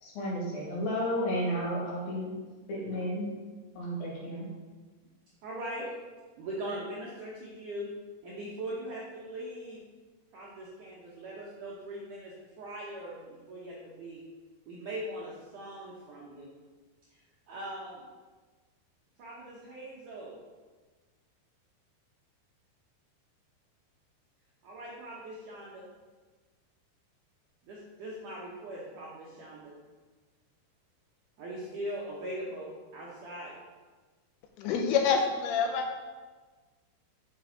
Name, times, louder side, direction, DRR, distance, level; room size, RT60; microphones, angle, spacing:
voice 1, 0.0-2.3 2.7-3.3 3.8-4.5, equal, 55° left, -5 dB, 3.6 m, -32 dB
voice 2, 5.4-5.9 6.4-7.9 8.2-9.8 10.3-14.2 14.7-16.5 17.1-18.1 19.2-20.4 24.6-25.9 27.6-29.7 31.4-33.5, right 1 dB, 75° right, -5 dB, 1.9 m, -41 dB
voice 3, 34.6-35.9, left 6 dB, 80° left, 3 dB, 2.9 m, -27 dB
9.3 x 7.0 x 4.0 m, 1.4 s
omnidirectional pair, 5.3 m